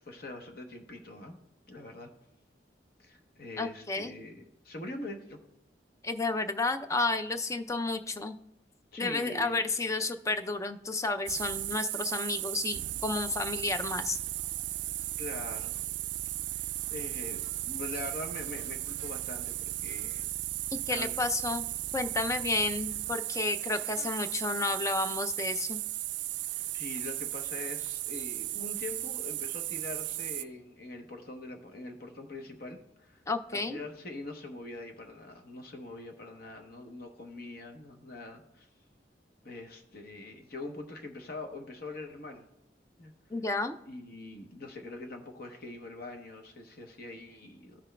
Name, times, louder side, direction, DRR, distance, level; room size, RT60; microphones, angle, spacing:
voice 1, 0.0-1.4 1.7-2.1 3.0-5.4 8.9-9.6 15.2-15.7 16.6-20.3 20.9-21.1 26.7-33.2 33.5-38.7 39.4-42.5 43.0-43.1 43.9-47.9, left 2 dB, 55° left, 4 dB, 0.9 m, -43 dB
voice 2, 3.6-4.1 6.0-8.4 9.0-14.2 20.9-21.7 21.9-25.8 33.3-33.8 43.3-43.8, left 3 dB, 15° left, 9 dB, 0.3 m, -31 dB
sound 1, 11.3-30.4, right 16 dB, 80° right, 0.3 m, -36 dB
14.5 x 6.0 x 2.2 m, 0.84 s
head